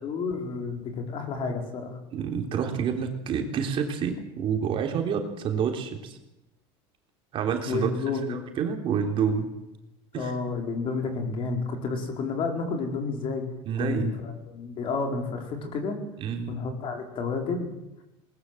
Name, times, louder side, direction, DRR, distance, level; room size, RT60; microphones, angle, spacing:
voice 1, 0.0-2.0 7.7-8.4 10.1-13.4 13.8-16.0 16.5-17.7, left 4 dB, 40° left, 4 dB, 4.8 m, -30 dB
voice 2, 2.1-6.2 7.3-7.9 8.3-9.5 10.1-10.3 13.7-14.1 16.2-16.6, right 7 dB, 40° right, 3 dB, 3.5 m, -28 dB
21.0 x 20.0 x 7.9 m, 0.91 s
cardioid pair, 140°, 13 cm